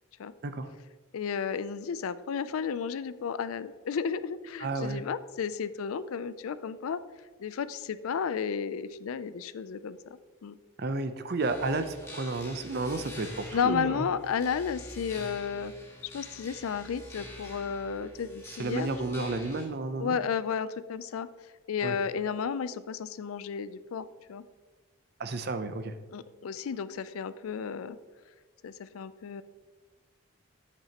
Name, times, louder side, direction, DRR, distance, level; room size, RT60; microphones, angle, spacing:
voice 1, 1.1-7.0 7.4-10.0 10.4-10.6 13.5-15.7 16.1-18.9 19.2-19.3 20.0-21.3 21.7-24.4 26.1-28.0 28.6-29.4, left 6 dB, 80° left, 15 dB, 0.4 m, -33 dB
voice 2, 4.6-5.0 10.8-14.1 18.6-20.2 21.8-22.0 25.2-25.9, right 3 dB, 45° right, 9 dB, 0.5 m, -32 dB
sound 1, 11.4-19.6, left 1 dB, 15° left, 1.4 m, -46 dB
8.9 x 8.1 x 2.9 m, 1.4 s
head